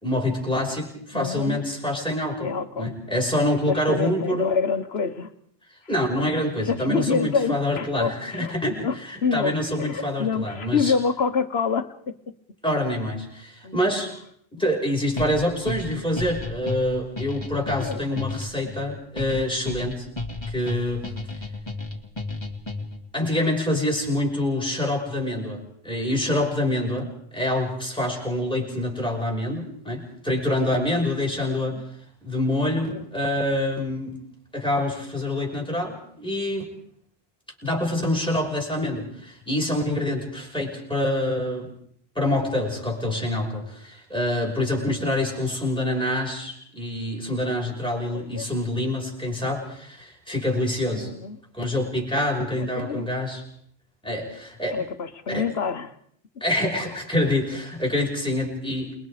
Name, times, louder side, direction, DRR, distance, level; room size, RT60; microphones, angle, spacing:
voice 1, 0.0-2.5 2.8-4.5 5.9-10.9 12.6-14.1 14.5-20.1 20.5-21.1 23.1-31.8 32.2-34.2 34.5-36.7 37.6-41.7 42.2-51.1 51.5-53.4 54.0-54.8 55.3-55.5 56.4-58.9, left 1 dB, 5° left, -1 dB, 5.6 m, -26 dB
voice 2, 1.1-1.6 2.4-2.9 3.7-5.3 6.7-8.9 9.2-9.5 9.8-11.9 13.6-13.8 17.8-18.3 31.5-31.8 32.9-33.0 48.1-48.5 50.9-51.4 52.6-53.0 54.7-55.9, left 5 dB, 75° left, 10 dB, 1.5 m, -27 dB
sound 1, 15.2-23.1, left 2 dB, 25° left, 2.1 m, -33 dB
28.5 x 21.5 x 5.0 m, 0.65 s
omnidirectional pair, 1.1 m